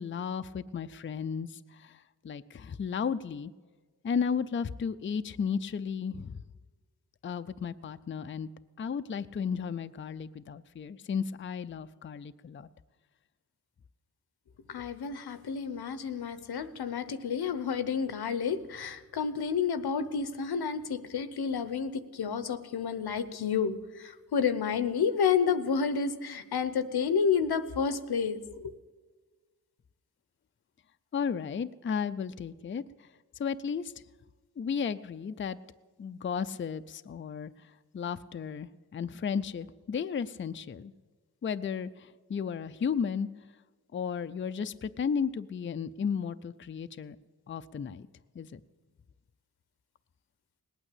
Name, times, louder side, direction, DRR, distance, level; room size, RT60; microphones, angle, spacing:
voice 1, 0.0-3.5 4.0-6.4 7.2-8.5 8.8-12.7 31.1-33.1 33.4-33.9 34.6-35.6 36.0-37.5 37.9-40.9 41.4-43.3 43.9-47.2 47.5-48.1 48.4-48.6, left 6 dB, 35° left, 11 dB, 0.4 m, -34 dB
voice 2, 14.7-28.7, left 6 dB, 90° left, 13 dB, 0.9 m, -30 dB
18.5 x 8.9 x 8.4 m, 1.4 s
wide cardioid pair, 85°, 37 cm